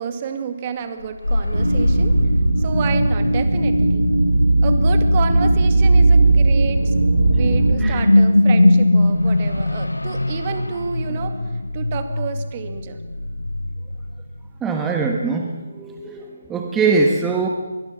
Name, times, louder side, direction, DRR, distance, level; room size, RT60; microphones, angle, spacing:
voice 1, 0.0-2.2 2.6-4.1 4.6-6.9 7.2-11.4 11.7-13.0, right 6 dB, 30° right, 8 dB, 2.2 m, -30 dB
sound 1, 1.0-14.5, left 1 dB, 90° left, 0.8 m, -21 dB
sound 2, 1.5-7.7, right 2 dB, 90° right, 2.5 m, -17 dB
voice 2, 14.6-17.5, right 4 dB, 10° right, 1 dB, 1.5 m, -22 dB
23.5 x 20.0 x 7.3 m, 1.3 s
figure-of-eight pair, 150°, 0 cm